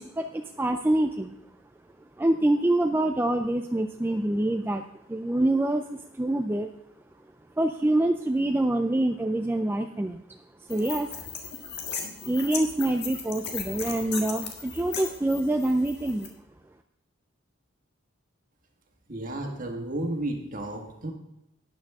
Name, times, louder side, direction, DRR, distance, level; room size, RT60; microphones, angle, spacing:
voice 1, 0.0-1.3 2.2-6.7 7.6-10.4 10.7-11.1 12.2-16.3, right 1 dB, 10° right, 5 dB, 0.3 m, -26 dB
sound 1, 10.7-16.3, left 6 dB, 50° left, 1.6 m, -37 dB
voice 2, 19.1-21.1, right 1 dB, 40° right, 2 dB, 1.7 m, -32 dB
12.5 x 9.7 x 3.6 m, 0.85 s
head